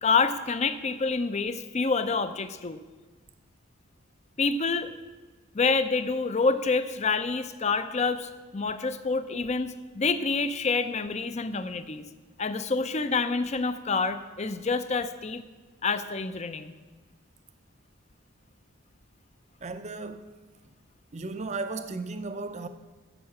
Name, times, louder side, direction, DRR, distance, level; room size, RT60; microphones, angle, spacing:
voice 1, 0.0-2.8 4.4-4.9 5.5-12.0 12.4-15.4 15.8-16.7, left 4 dB, 30° left, 0.5 m, -27 dB
voice 2, 19.6-20.3 21.1-22.7, right 3 dB, 30° right, 0.5 m, -35 dB
13.5 x 5.6 x 7.0 m
head